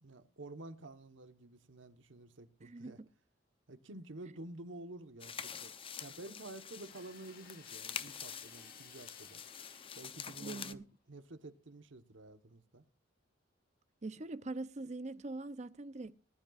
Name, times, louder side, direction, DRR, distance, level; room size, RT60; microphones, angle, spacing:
voice 1, 0.0-3.0 3.7-5.7 6.0-9.4 10.0-12.8, right 2 dB, 70° right, 1.2 m, -50 dB
voice 2, 2.6-2.9 10.4-10.8 14.0-16.1, right 2 dB, 35° right, 0.5 m, -43 dB
sound 1, 5.2-10.7, left 7 dB, 25° left, 0.6 m, -46 dB
sound 2, 6.7-10.8, left 7 dB, 45° left, 1.7 m, -60 dB
19.0 x 12.0 x 2.4 m
head